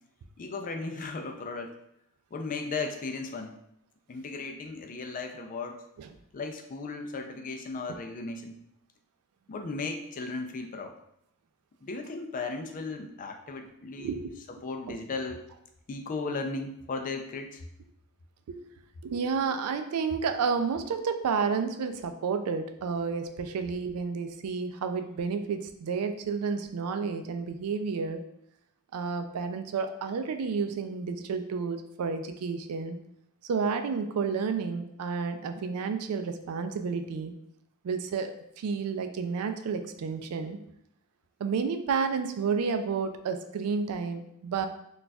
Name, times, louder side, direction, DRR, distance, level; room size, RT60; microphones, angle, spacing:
voice 1, 0.4-1.7 2.3-3.6 4.1-5.8 6.3-8.6 9.5-10.9 11.8-14.2 14.5-15.4 15.9-17.6, left 3 dB, 40° left, 5 dB, 0.3 m, -36 dB
voice 2, 14.0-14.3 18.5-18.6 19.0-28.2 28.9-33.0 33.4-37.3 37.8-40.6 41.4-44.7, right 5 dB, 80° right, 8 dB, 0.3 m, -31 dB
4.0 x 2.3 x 2.3 m, 0.76 s
head